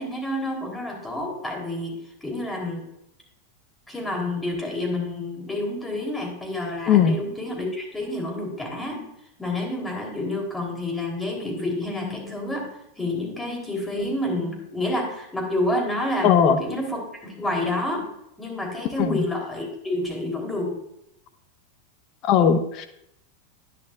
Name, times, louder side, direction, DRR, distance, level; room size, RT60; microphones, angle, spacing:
voice 1, 0.0-2.8 3.9-9.1 9.4-18.1 18.4-20.8, left 1 dB, 10° left, 1 dB, 3.3 m, -29 dB
voice 2, 16.2-16.6 19.0-19.2 22.2-22.9, left 8 dB, 45° left, 9 dB, 1.0 m, -18 dB
10.5 x 10.5 x 2.4 m, 0.77 s
hypercardioid pair, 100°, 0 cm